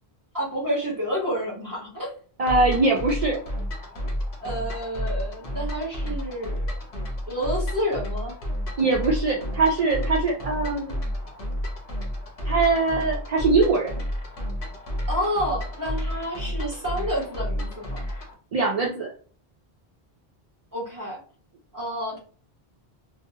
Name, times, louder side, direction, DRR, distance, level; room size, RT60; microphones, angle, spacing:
voice 1, 0.3-2.1 4.4-6.7 7.3-8.4 15.1-18.0 20.7-21.2 21.7-22.2, equal, 20° right, -3 dB, 0.9 m, -29 dB
voice 2, 2.4-3.4 8.8-10.9 12.4-13.9 18.5-19.1, right 3 dB, 50° right, -2 dB, 0.4 m, -22 dB
sound 1, 2.5-18.3, equal, 45° left, 0.6 m, -31 dB
2.6 x 2.0 x 2.6 m, 0.43 s
omnidirectional pair, 1.1 m